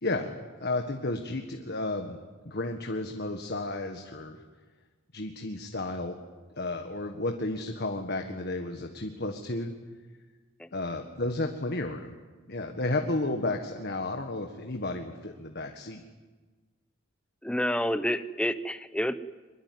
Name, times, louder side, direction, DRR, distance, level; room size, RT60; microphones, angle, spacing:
voice 1, 0.0-2.2 2.4-4.4 5.1-6.2 6.6-9.7 10.7-12.2 12.5-16.0, left 2 dB, 50° left, 4 dB, 1.7 m, -32 dB
voice 2, 17.4-19.1, equal, 5° left, 12 dB, 0.8 m, -29 dB
24.0 x 21.5 x 9.4 m, 1.3 s
head